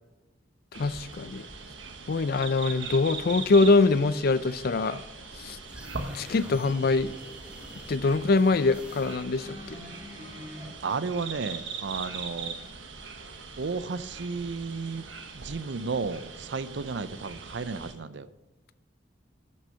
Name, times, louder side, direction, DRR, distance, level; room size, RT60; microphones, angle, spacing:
voice 1, 0.7-1.5 2.1-5.0 5.4-5.6 6.1-7.1 7.9-9.8, left 3 dB, 55° left, 15 dB, 0.5 m, -24 dB
sound 1, 0.7-17.9, right 4 dB, 85° right, 1.3 m, -41 dB
sound 2, 5.7-9.5, right 1 dB, 5° right, 1.3 m, -47 dB
sound 3, 9.4-10.7 11.7-11.8, left 1 dB, 20° right, 3.3 m, -43 dB
voice 2, 10.8-12.5 13.6-15.1 15.3-18.3, right 4 dB, 65° right, 14 dB, 0.6 m, -33 dB
11.5 x 6.3 x 5.7 m, 1.1 s
head